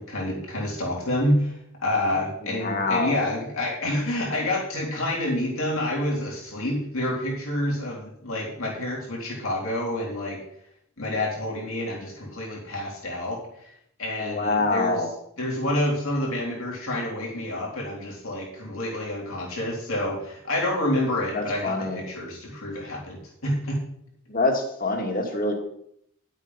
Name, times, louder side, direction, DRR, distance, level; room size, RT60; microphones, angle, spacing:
voice 1, 0.0-1.5 1.8-10.4 11.0-13.4 14.0-15.0 15.4-23.8, left 1 dB, 65° left, -3 dB, 3.9 m, -28 dB
voice 2, 2.4-3.3 14.2-15.1 21.3-22.0 24.3-25.5, left 2 dB, 40° left, 3 dB, 2.2 m, -26 dB
11.0 x 8.2 x 5.6 m, 0.71 s
head